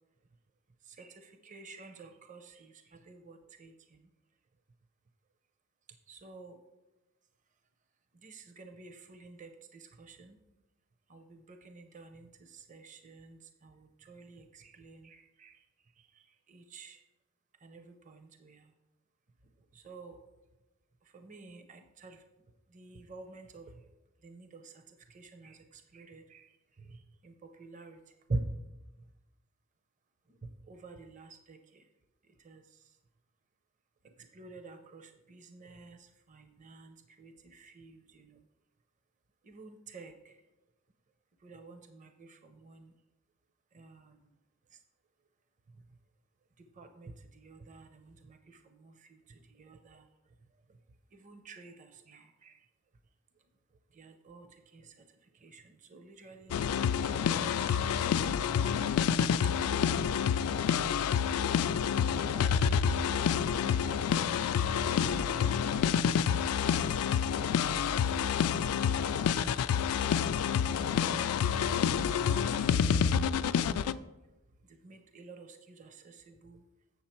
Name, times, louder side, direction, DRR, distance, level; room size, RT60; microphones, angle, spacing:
voice 1, 0.9-3.7 6.1-6.6 8.2-10.4 11.1-15.6 16.5-17.0 17.6-18.7 19.7-20.2 21.1-22.2 22.7-23.7 24.2-26.5 26.8-28.0 28.3-28.4 30.4-31.8 32.4-32.6 34.3-38.4 39.4-40.4 41.4-42.9 43.7-44.1 46.8-50.0 51.1-52.6 53.9-54.5 54.7-54.9 55.4-57.8 59.6-60.1 61.9-63.2 63.6-66.1 67.7-69.1 70.4-71.4 72.3-73.2 74.8-76.6, right 3 dB, 35° right, 7 dB, 0.6 m, -48 dB
sound 1, 56.5-73.9, left 7 dB, 80° left, 0.3 m, -28 dB
7.2 x 7.1 x 4.4 m, 1.0 s
head